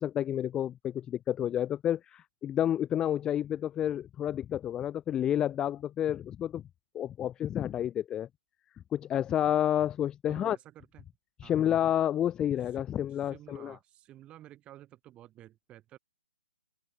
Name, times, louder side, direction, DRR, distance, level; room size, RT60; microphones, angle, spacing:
voice 1, 0.0-6.6 6.9-8.3 8.9-10.6 11.4-13.8, left 10 dB, 10° left, 0.3 m, -30 dB
voice 2, 10.3-11.0 11.4-11.7 12.7-12.8 13.1-16.0, right 13 dB, 20° right, 6.8 m, -52 dB
open air
figure-of-eight pair, 140°, 6 cm